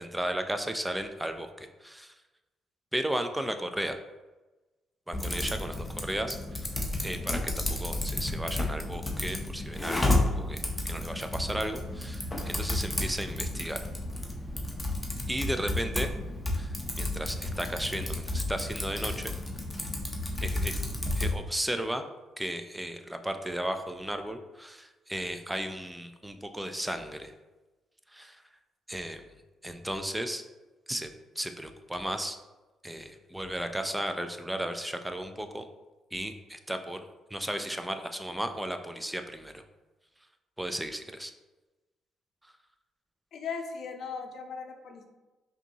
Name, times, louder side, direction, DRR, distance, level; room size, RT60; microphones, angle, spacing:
voice 1, 0.0-2.1 2.9-4.0 5.1-6.7 7.0-13.9 15.3-16.1 16.5-19.3 20.4-20.8 21.1-22.0 22.4-27.3 28.1-28.4 28.9-29.3 29.6-30.4 30.9-31.1 31.4-32.4 32.8-35.7 36.1-37.0 37.3-39.6 40.6-41.3, right 1 dB, 5° right, 7 dB, 0.3 m, -35 dB
Typing, 5.1-21.4, left 2 dB, 15° left, 0.7 m, -32 dB
voice 2, 43.3-45.0, left 5 dB, 60° left, 5 dB, 0.5 m, -38 dB
5.1 x 2.7 x 2.8 m, 1.1 s
cardioid pair, 90°, 0 cm